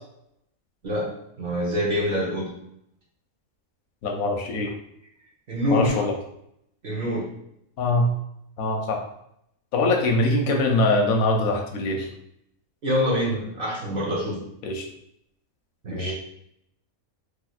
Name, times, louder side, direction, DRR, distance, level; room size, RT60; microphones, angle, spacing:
voice 1, 0.8-2.5 5.5-6.1 6.8-7.3 12.8-14.4 15.8-16.1, equal, 45° right, -4 dB, 1.0 m, -26 dB
voice 2, 4.0-4.7 5.7-6.1 7.8-8.1 8.6-9.0 9.7-12.1 14.6-14.8 15.9-16.1, left 2 dB, 90° left, 2 dB, 1.1 m, -23 dB
3.2 x 2.8 x 2.3 m, 0.75 s
omnidirectional pair, 1.5 m